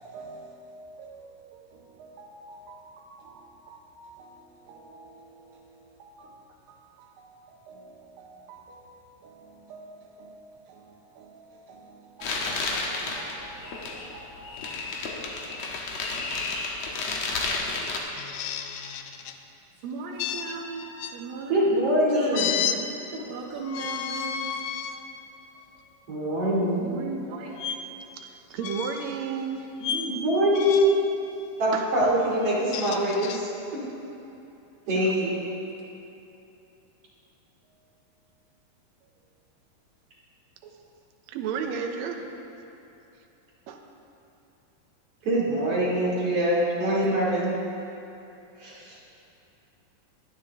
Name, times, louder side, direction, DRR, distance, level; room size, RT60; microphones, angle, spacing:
voice 1, 0.0-16.2 16.7-17.2 17.7-18.0 19.8-21.8 22.1-22.8 23.3-24.5 26.8-28.0 35.0-35.2 40.6-40.7, right 4 dB, 90° right, -2 dB, 2.8 m, -42 dB
sound 1, 12.2-18.0, left 3 dB, 60° left, 2.1 m, -31 dB
sound 2, 18.2-19.4 20.2-21.1 22.3-22.8 23.6-25.0 25.6-25.8 27.6-27.8 28.6-29.2 29.8-30.1 30.5-31.0 32.5-33.4, left 8 dB, 85° left, 1.6 m, -32 dB
voice 2, 21.5-22.5 26.1-26.9 29.8-30.9 31.6-33.5 34.9-35.4 45.2-47.5 48.6-49.1, right 1 dB, 45° right, -6 dB, 3.4 m, -24 dB
voice 3, 28.5-29.7 31.7-31.9 41.3-42.2 43.7-43.8, right 6 dB, 70° right, 3 dB, 1.8 m, -31 dB
22.0 x 10.0 x 3.6 m, 2.8 s
omnidirectional pair, 4.0 m